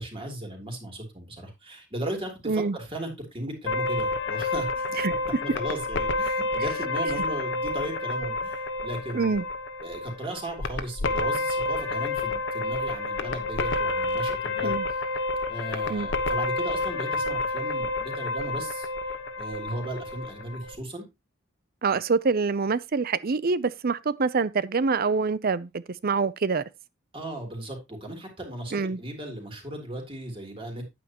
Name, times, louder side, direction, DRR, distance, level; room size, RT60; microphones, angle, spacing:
voice 1, 0.0-4.9 5.4-9.4 9.8-15.0 15.5-18.9 19.4-21.0 27.1-30.8, right 1 dB, 25° right, 3.1 m, -36 dB
voice 2, 2.5-2.8 5.0-5.1 9.1-9.4 14.6-14.9 15.9-16.1 21.8-26.6 28.7-29.0, right 4 dB, 50° right, 0.6 m, -25 dB
sound 1, 3.7-20.8, left 2 dB, 65° left, 1.1 m, -29 dB
9.5 x 9.2 x 2.9 m
head